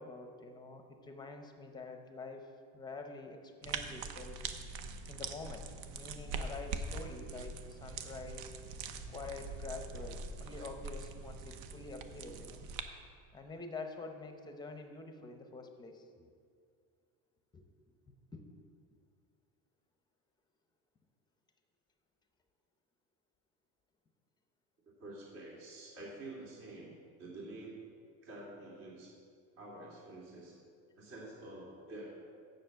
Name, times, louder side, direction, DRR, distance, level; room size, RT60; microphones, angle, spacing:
voice 1, 0.0-4.4 5.1-5.6 5.9-8.5 9.1-12.7 13.3-16.3 17.5-17.6 18.3-18.7, left 3 dB, 15° left, 5 dB, 0.7 m, -47 dB
sound 1, 3.6-12.8, right 4 dB, 70° right, 0.8 m, -43 dB
voice 2, 25.0-26.9 27.2-27.8 28.2-29.1 29.6-30.6 31.0-32.2, right 2 dB, 55° right, -4 dB, 2.7 m, -48 dB
7.0 x 6.4 x 7.8 m, 2.2 s
cardioid pair, 160°, 31 cm